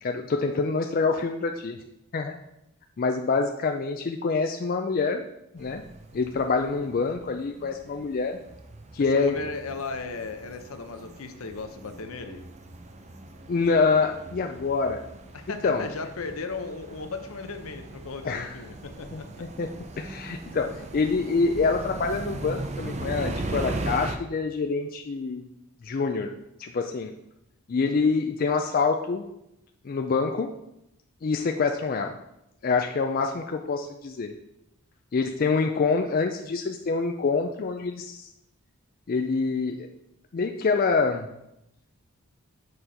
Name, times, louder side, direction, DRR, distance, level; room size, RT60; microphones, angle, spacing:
voice 1, 0.0-1.8 2.1-2.4 3.0-5.2 5.5-5.8 6.1-8.4 8.9-9.4 13.5-15.0 15.6-15.9 18.2-18.5 19.1-19.2 19.6-19.7 20.0-25.5 25.8-26.3 26.6-27.1 27.7-29.2 29.8-30.5 31.2-32.2 32.6-34.3 35.1-38.3 39.1-39.9 40.3-41.3, left 4 dB, 40° left, 5 dB, 0.4 m, -26 dB
sound 1, 5.6-24.2, right 2 dB, 30° right, 0.5 m, -39 dB
voice 2, 9.1-12.4 15.3-19.5, left 4 dB, 75° left, 7 dB, 0.7 m, -36 dB
6.7 x 4.3 x 5.1 m, 0.84 s
head